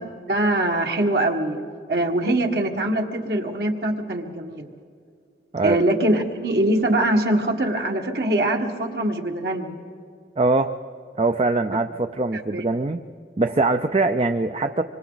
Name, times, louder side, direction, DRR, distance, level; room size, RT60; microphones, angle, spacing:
voice 1, 0.3-1.6 1.9-4.7 5.6-9.7 12.5-12.6, right 1 dB, 60° right, 2 dB, 1.7 m, -23 dB
voice 2, 10.4-10.7 11.2-13.0 13.4-14.8, right 2 dB, 30° right, 7 dB, 0.5 m, -22 dB
26.0 x 25.0 x 4.0 m, 2.2 s
head